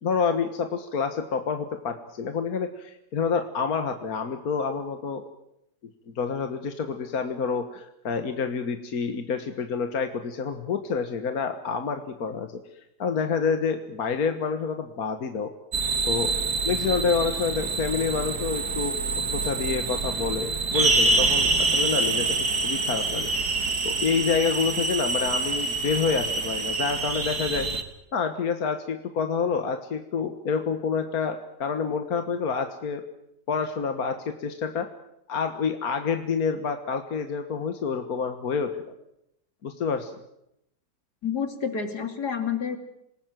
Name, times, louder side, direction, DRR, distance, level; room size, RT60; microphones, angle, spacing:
voice 1, 0.0-5.2 6.2-12.6 13.0-15.5 16.1-16.3 16.6-18.9 19.3-23.3 23.9-27.7 28.1-33.0 33.5-34.9 35.3-38.7 39.6-40.1, left 5 dB, 65° left, 7 dB, 1.9 m, -28 dB
sound 1, 15.7-27.8, right 3 dB, 80° right, 2.5 m, -26 dB
voice 2, 41.2-42.8, left 7 dB, 85° left, 7 dB, 3.3 m, -29 dB
27.5 x 18.5 x 9.2 m, 0.82 s
omnidirectional pair, 1.7 m